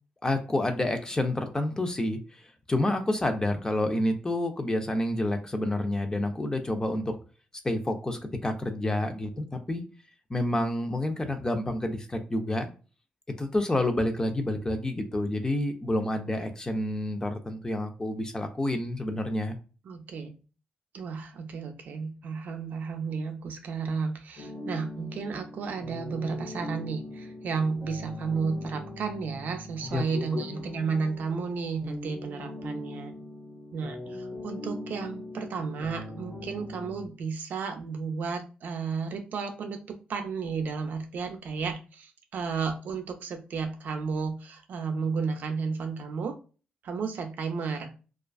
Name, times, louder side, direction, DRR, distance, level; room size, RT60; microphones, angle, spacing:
voice 1, 0.2-7.2 7.6-9.8 10.3-12.7 13.4-19.6 29.9-30.4, left 1 dB, 20° left, 6 dB, 0.5 m, -29 dB
voice 2, 19.8-20.3 20.9-33.2 33.7-46.3 46.8-47.9, right 5 dB, 70° right, 5 dB, 0.5 m, -33 dB
sound 1, 24.4-37.1, left 2 dB, 70° left, 0.8 m, -41 dB
2.3 x 2.3 x 2.3 m, 0.34 s
cardioid pair, 75°, 3 cm